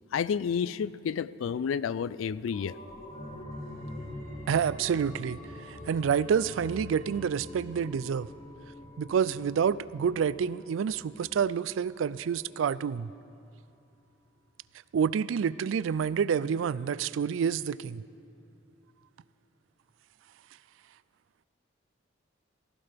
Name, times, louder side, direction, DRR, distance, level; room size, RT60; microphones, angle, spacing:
voice 1, 0.1-2.8, left 7 dB, 80° left, 19 dB, 0.3 m, -30 dB
sound 1, 2.5-11.9 12.2-12.3, left 1 dB, 40° left, 2.4 m, -44 dB
voice 2, 4.5-5.4 5.7-8.3 9.0-13.1 14.9-18.0, right 7 dB, 75° right, 19 dB, 0.3 m, -28 dB
18.5 x 16.0 x 3.5 m, 2.7 s
head